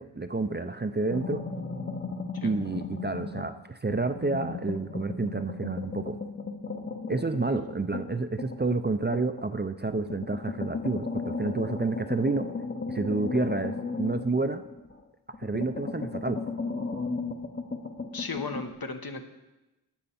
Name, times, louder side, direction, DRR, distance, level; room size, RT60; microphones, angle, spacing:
voice 1, 0.0-1.4 2.4-6.2 7.1-12.5 12.9-14.6 15.4-16.4, right 3 dB, 25° right, 9 dB, 0.5 m, -29 dB
sound 1, 1.1-3.6 3.9-9.5 10.0-15.0 15.3-18.7, left 4 dB, 30° left, 0.8 m, -35 dB
voice 2, 18.1-19.2, left 4 dB, 60° left, 6 dB, 1.0 m, -36 dB
12.0 x 7.9 x 4.3 m, 1.0 s
wide cardioid pair, 60°, 41 cm